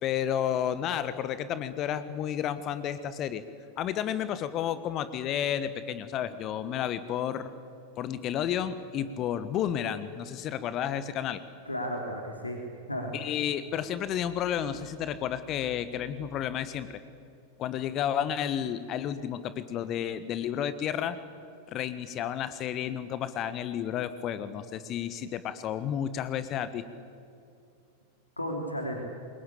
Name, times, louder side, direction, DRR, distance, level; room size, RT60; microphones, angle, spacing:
voice 1, 0.0-3.4 3.8-7.5 8.0-11.4 13.1-17.0 17.6-21.2 21.7-26.9, left 10 dB, 35° left, 13 dB, 1.3 m, -31 dB
voice 2, 11.6-12.6 12.9-13.1 28.4-29.0, equal, 85° left, 2 dB, 3.1 m, -33 dB
27.0 x 22.5 x 8.5 m, 2.5 s
figure-of-eight pair, 90°, 0 cm